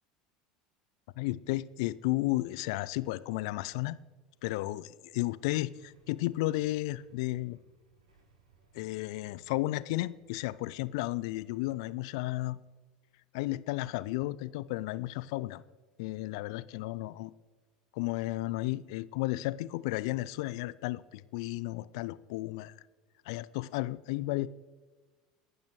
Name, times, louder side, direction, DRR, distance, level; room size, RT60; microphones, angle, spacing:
voice 1, 1.2-4.0 4.4-7.6 8.7-12.6 13.3-15.6 16.0-17.3 17.9-22.7 23.3-24.5, left 18 dB, 65° left, 18 dB, 0.5 m, -33 dB
Motorcycle / Engine starting / Idling, 5.7-11.8, right 3 dB, 80° right, 6.0 m, -66 dB
28.0 x 11.5 x 3.2 m, 1.3 s
hypercardioid pair, 75°, 3 cm